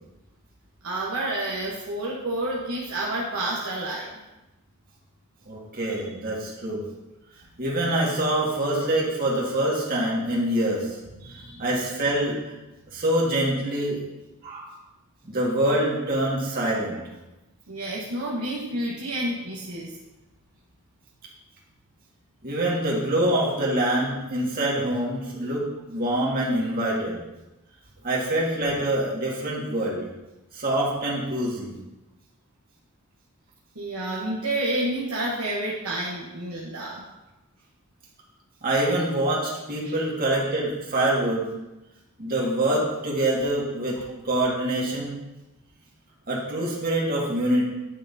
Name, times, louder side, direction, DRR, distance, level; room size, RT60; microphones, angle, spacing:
voice 1, 0.8-4.2 5.9-6.0 11.2-11.6 17.7-20.0 33.7-37.0 39.8-39.9, right 1 dB, 75° right, -5 dB, 1.1 m, -29 dB
voice 2, 5.5-6.8 7.6-11.0 11.6-12.4 12.9-14.0 14.4-14.7 15.2-17.0 22.4-27.2 28.0-30.0 30.5-31.7 38.6-41.5 42.2-45.2 46.3-47.6, right 1 dB, 45° right, -4 dB, 1.8 m, -25 dB
9.8 x 5.6 x 2.7 m, 1.0 s
head